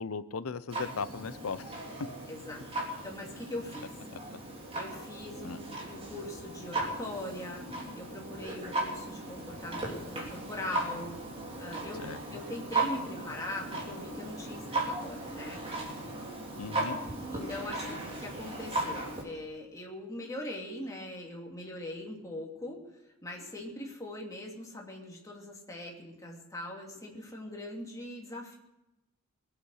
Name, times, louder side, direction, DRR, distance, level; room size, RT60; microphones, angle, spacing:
voice 1, 0.0-1.7 5.4-5.6 12.0-12.2 16.6-17.0, left 5 dB, 75° left, 15 dB, 0.7 m, -37 dB
Clock, 0.7-19.2, right 2 dB, 30° right, 3.4 m, -37 dB
voice 2, 2.3-2.6 3.0-3.9 4.7-7.7 8.0-11.2 11.6-15.6 17.3-22.8 23.2-28.6, left 1 dB, 15° left, -1 dB, 2.8 m, -41 dB
21.0 x 8.6 x 6.4 m, 0.96 s
head